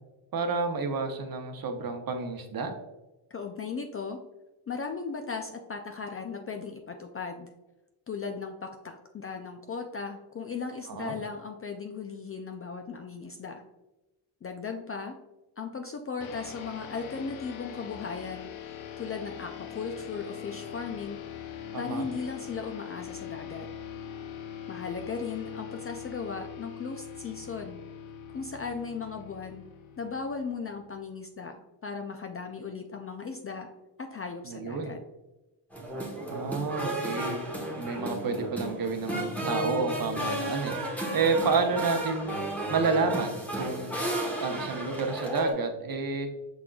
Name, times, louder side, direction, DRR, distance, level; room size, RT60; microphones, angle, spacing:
voice 1, 0.3-2.7 10.9-11.2 21.7-22.1 34.5-34.9 36.3-37.4 37.8-42.4 42.7-44.0 44.4-46.3, right 4 dB, 45° right, 5 dB, 0.8 m, -30 dB
voice 2, 3.3-4.2 4.7-7.5 8.1-13.6 14.4-15.2 15.6-18.5 19.0-21.2 21.8-23.7 24.7-27.8 28.3-29.6 30.0-33.7 34.0-35.0, left 5 dB, 30° left, 5 dB, 0.3 m, -37 dB
sound 1, 16.2-31.0, left 9 dB, 70° left, 0.7 m, -42 dB
sound 2, 35.7-45.5, right 1 dB, 5° left, 1.1 m, -33 dB
6.0 x 3.7 x 2.3 m, 1.0 s
cardioid pair, 90°, 50 cm